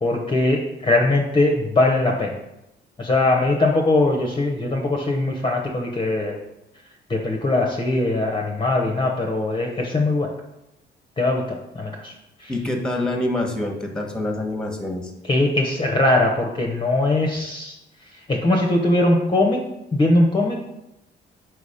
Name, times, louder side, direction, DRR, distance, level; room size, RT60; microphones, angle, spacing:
voice 1, 0.0-2.4 3.0-6.4 7.1-10.3 11.2-12.1 12.4-12.5 15.3-17.7 18.3-19.6 19.9-20.7, left 2 dB, 25° left, 1 dB, 0.8 m, -21 dB
voice 2, 12.5-15.1, left 1 dB, 5° left, 3 dB, 1.1 m, -26 dB
4.7 x 4.1 x 4.9 m, 0.89 s
cardioid pair, 90°, 20 cm